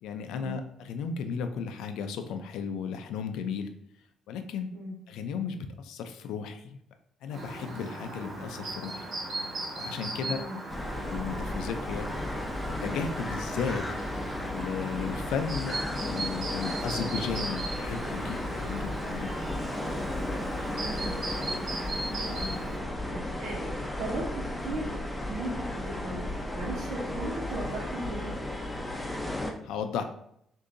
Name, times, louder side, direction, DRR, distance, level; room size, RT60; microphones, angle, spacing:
voice 1, 0.0-3.7 4.3-4.7 5.1-6.8 7.2-9.1 9.8-10.4 11.1-12.1 12.6-13.9 14.5-19.3 29.6-30.0, left 6 dB, 90° left, 7 dB, 0.4 m, -35 dB
Chirp tweet, 7.3-22.8, right 2 dB, 60° right, 1.6 m, -38 dB
voice 2, 10.2-10.6 20.6-21.2 22.0-22.6 23.1-28.3, right 2 dB, 85° right, -5 dB, 1.0 m, -37 dB
sound 1, 10.7-29.5, left 1 dB, 10° left, 0.7 m, -34 dB
6.5 x 2.6 x 2.6 m, 0.73 s
cardioid pair, 90°, 0 cm